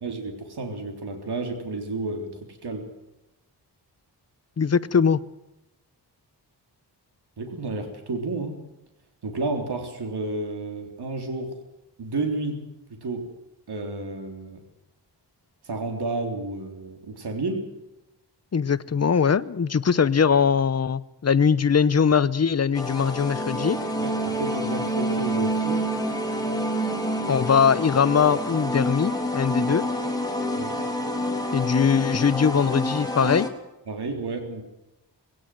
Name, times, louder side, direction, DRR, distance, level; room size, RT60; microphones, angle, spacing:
voice 1, 0.0-2.9 7.4-8.6 9.2-11.6 12.0-13.2 13.7-14.6 15.6-17.7 24.0-25.8 29.7-29.8 30.6-30.8 33.9-34.6, right 3 dB, 65° right, 4 dB, 3.6 m, -31 dB
voice 2, 4.6-5.2 18.5-23.8 27.3-29.8 31.5-33.5, left 6 dB, 35° left, 15 dB, 0.8 m, -21 dB
sound 1, 22.7-33.5, equal, 10° left, 3.0 m, -27 dB
20.5 x 18.0 x 7.7 m, 0.92 s
wide cardioid pair, 135°, 43 cm